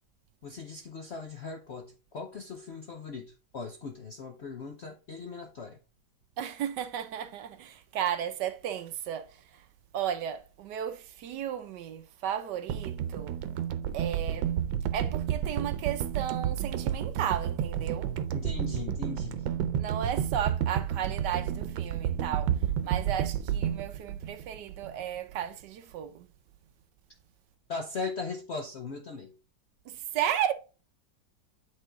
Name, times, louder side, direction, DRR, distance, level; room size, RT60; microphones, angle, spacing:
voice 1, 0.4-5.8 18.3-19.5 27.7-29.4, left 4 dB, 60° left, 0.7 m, -39 dB
voice 2, 6.4-9.7 9.9-13.4 13.9-14.5 14.9-18.1 19.7-26.3 29.9-30.5, right 10 dB, 70° right, 1.2 m, -34 dB
sound 1, 12.7-25.0 25.3-25.5, right 9 dB, 90° right, 1.4 m, -31 dB
8.6 x 3.8 x 3.6 m
omnidirectional pair, 2.0 m